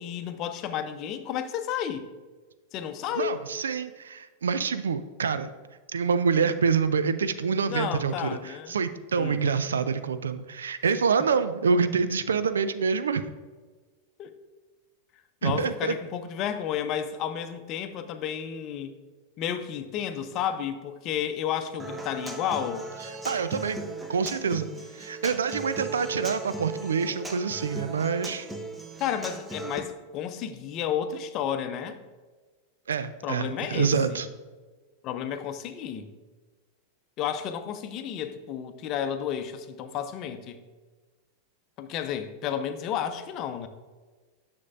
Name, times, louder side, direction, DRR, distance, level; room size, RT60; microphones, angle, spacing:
voice 1, 0.0-2.1 2.7-3.4 7.7-8.8 9.2-9.4 14.2-14.3 15.4-18.9 19.4-22.9 29.0-32.0 33.2-34.2 35.0-36.1 37.2-40.6 41.8-43.7, left 9 dB, 35° left, 9 dB, 0.7 m, -32 dB
voice 2, 3.1-5.5 5.9-13.2 15.4-15.9 23.2-23.8 24.1-24.7 24.9-28.5 32.9-34.3, right 5 dB, 70° right, 11 dB, 0.4 m, -26 dB
Human voice / Acoustic guitar, 21.8-29.8, right 2 dB, 10° right, 0.8 m, -37 dB
9.5 x 6.8 x 2.5 m, 1.3 s
figure-of-eight pair, 90°, 0 cm